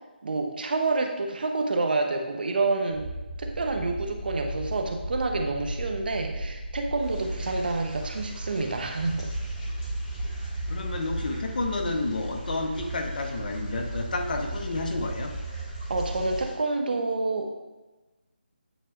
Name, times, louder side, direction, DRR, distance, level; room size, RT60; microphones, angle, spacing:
voice 1, 0.2-3.1 3.4-9.3 15.9-17.5, right 3 dB, 55° right, 4 dB, 0.8 m, -28 dB
sound 1, 2.9-16.4, right 1 dB, 30° right, 1.3 m, -35 dB
sound 2, 7.0-16.5, equal, 30° left, 1.8 m, -48 dB
voice 2, 10.7-15.3, left 2 dB, 50° left, 3 dB, 0.8 m, -30 dB
9.0 x 4.3 x 2.5 m, 1.1 s
figure-of-eight pair, 165°, 6 cm